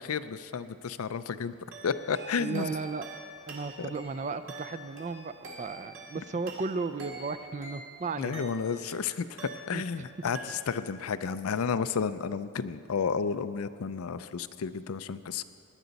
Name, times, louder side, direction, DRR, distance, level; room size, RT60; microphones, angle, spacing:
voice 1, 0.0-1.5 1.8-2.7 3.8-3.9 8.2-15.4, left 6 dB, 75° left, 13 dB, 0.5 m, -32 dB
sound 1, 1.7-9.0 9.4-10.1 10.3-11.0, right 2 dB, 60° right, 2.2 m, -46 dB
voice 2, 2.4-3.0 3.5-8.4 9.7-10.3, right 4 dB, 35° right, 11 dB, 0.4 m, -35 dB
18.0 x 10.5 x 4.1 m, 2.5 s
head